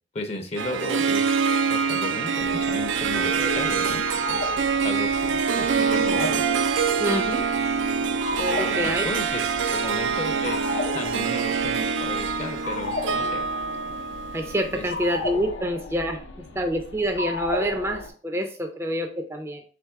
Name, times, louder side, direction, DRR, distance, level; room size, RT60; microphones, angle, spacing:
voice 1, 0.1-4.0 4.3-4.6 4.8-6.5 8.7-13.4 14.7-14.8, left 2 dB, 35° left, 4 dB, 0.6 m, -34 dB
Harp, 0.6-15.1, right 5 dB, 90° right, 0.4 m, -25 dB
sound 1, 2.4-18.1, left 2 dB, 85° left, 0.6 m, -35 dB
voice 2, 7.0-7.5 8.3-9.0 14.3-16.2 16.5-19.6, equal, 15° right, 4 dB, 0.4 m, -27 dB
3.4 x 3.3 x 4.5 m, 0.42 s
head